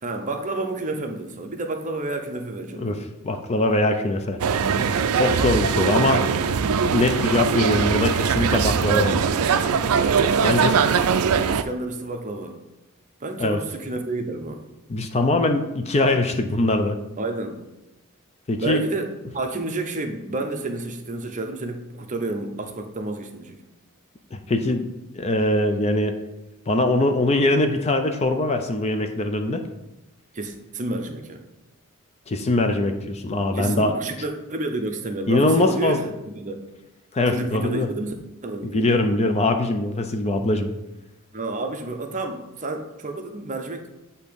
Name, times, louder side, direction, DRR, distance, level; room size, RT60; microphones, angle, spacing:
voice 1, 0.0-3.0 9.1-9.3 11.2-12.6 13.2-14.7 17.2-17.6 18.6-23.6 30.3-31.4 33.5-36.6 37.3-38.1 38.4-39.0 41.3-43.9, right 2 dB, 35° right, 4 dB, 0.6 m, -30 dB
voice 2, 3.2-4.4 5.1-6.3 6.9-9.3 10.4-10.8 13.4-13.6 14.9-17.0 18.5-18.8 24.3-24.9 25.1-26.1 26.7-29.6 32.3-33.9 35.3-36.0 37.1-37.9 38.6-40.7, left 2 dB, 30° left, 6 dB, 0.4 m, -22 dB
sound 1, 4.4-11.6, right 6 dB, 70° right, 0.4 m, -21 dB
8.1 x 2.8 x 5.2 m, 0.98 s
head